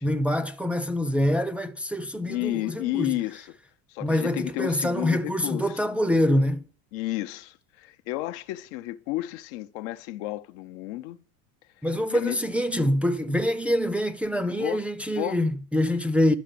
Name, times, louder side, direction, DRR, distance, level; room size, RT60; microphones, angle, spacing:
voice 1, 0.0-3.1 4.0-6.6 11.8-16.4, left 1 dB, 5° right, 0.5 m, -25 dB
voice 2, 2.3-3.5 3.9-5.8 6.9-11.2 12.1-12.4 14.5-14.8 15.1-15.4, left 17 dB, 70° left, 0.8 m, -32 dB
11.5 x 5.9 x 8.4 m
cardioid pair, 145°, 37 cm